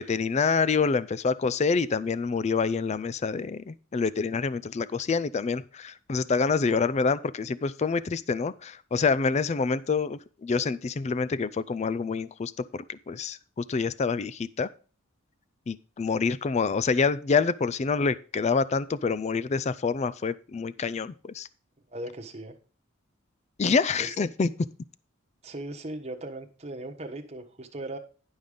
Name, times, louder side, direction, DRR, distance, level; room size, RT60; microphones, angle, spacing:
voice 1, 0.0-14.7 15.7-21.5 23.6-24.5, left 5 dB, 35° left, 18 dB, 0.4 m, -27 dB
voice 2, 21.9-22.5 24.0-24.1 25.4-28.0, right 1 dB, 30° right, 3 dB, 1.2 m, -38 dB
10.5 x 5.5 x 5.0 m, 0.36 s
head